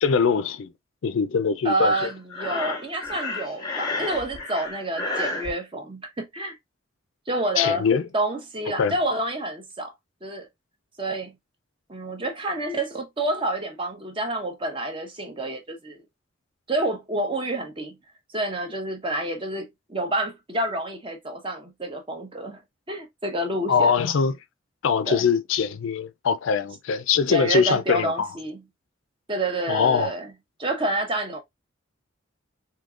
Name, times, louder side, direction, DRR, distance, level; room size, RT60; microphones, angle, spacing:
voice 1, 0.0-0.7 1.0-1.9 7.6-8.0 8.8-8.9 23.7-24.3 24.8-28.3 29.7-30.1, left 6 dB, 80° left, 0.4 m, -22 dB
voice 2, 1.6-6.6 7.3-7.9 8.1-9.9 10.2-10.5 11.0-11.3 11.9-16.0 16.7-18.0 18.3-22.6 22.9-23.9 25.1-25.3 27.3-28.6 29.3-30.3 30.6-31.4, right 1 dB, 25° right, 0.7 m, -28 dB
Breathing, 1.8-5.5, left 2 dB, 20° left, 0.8 m, -31 dB
3.6 x 2.8 x 2.4 m
head